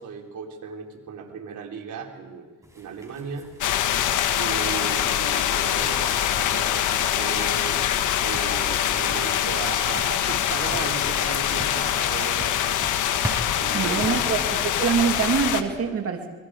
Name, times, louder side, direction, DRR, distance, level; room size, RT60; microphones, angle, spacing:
voice 1, 0.0-2.5 2.7-3.5 4.4-7.9 8.2-12.7 13.5-14.2 14.5-14.6, right 6 dB, 75° right, 1 dB, 4.1 m, -36 dB
sound 1, 2.6-15.2, right 1 dB, 10° right, 7.4 m, -42 dB
sound 2, 3.6-15.6, left 10 dB, 85° left, 1.5 m, -24 dB
voice 2, 13.7-16.3, right 6 dB, 50° right, 3 dB, 2.6 m, -24 dB
29.5 x 22.5 x 5.0 m, 1.3 s
cardioid pair, 90°, 30 cm